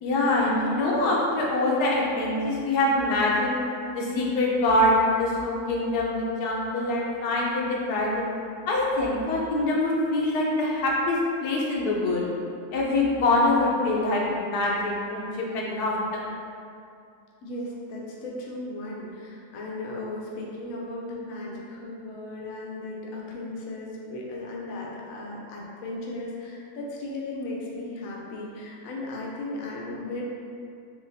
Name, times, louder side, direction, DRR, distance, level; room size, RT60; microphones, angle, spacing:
voice 1, 0.0-3.6 3.9-8.3 8.7-12.3 12.7-16.2, left 2 dB, 85° left, -4 dB, 1.2 m, -24 dB
voice 2, 17.4-30.2, left 2 dB, 70° left, -3 dB, 1.0 m, -36 dB
4.0 x 3.0 x 2.6 m, 2.4 s
omnidirectional pair, 1.6 m